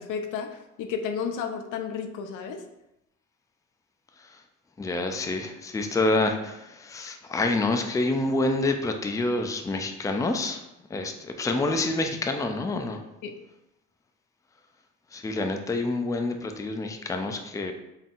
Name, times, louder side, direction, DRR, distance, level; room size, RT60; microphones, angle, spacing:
voice 1, 0.0-2.6 13.2-13.4, left 6 dB, 85° left, 6 dB, 0.5 m, -32 dB
voice 2, 4.8-10.6 10.9-13.0 15.1-17.7, left 2 dB, 10° left, 5 dB, 0.4 m, -27 dB
3.9 x 3.8 x 2.4 m, 0.89 s
cardioid pair, 90°, 30 cm